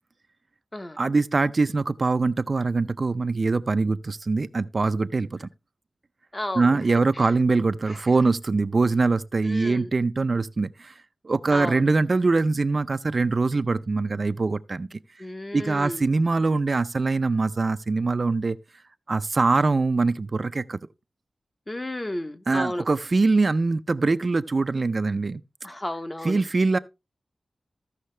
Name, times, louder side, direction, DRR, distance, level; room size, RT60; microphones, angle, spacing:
voice 1, 1.0-5.5 6.6-10.9 11.2-15.0 15.5-18.6 19.1-20.8 22.5-25.4 26.2-26.8, right 3 dB, 45° right, 0.4 m, -23 dB
voice 2, 6.3-6.8 7.1-7.3 7.9-8.0 9.4-9.9 11.5-11.8 15.2-16.0 21.7-22.8 25.6-26.4, left 1 dB, 20° left, 0.7 m, -33 dB
14.5 x 5.6 x 3.2 m
wide cardioid pair, 120°, 0 cm